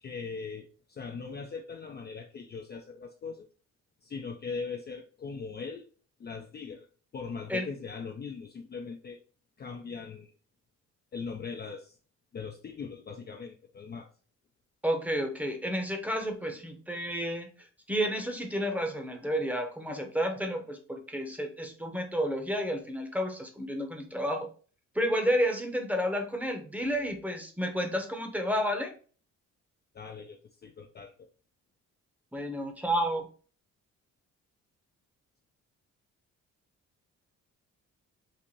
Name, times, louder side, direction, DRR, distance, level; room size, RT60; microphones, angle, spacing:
voice 1, 0.0-3.5 4.0-5.9 6.2-6.9 7.1-9.2 9.6-10.3 11.1-12.0 12.3-14.1 29.9-31.3, left 5 dB, 35° left, 3 dB, 0.4 m, -40 dB
voice 2, 14.8-17.5 17.9-24.5 24.9-28.9 32.3-33.3, equal, 5° right, 4 dB, 0.8 m, -31 dB
4.0 x 2.5 x 3.0 m, 0.40 s
cardioid pair, 90°, 30 cm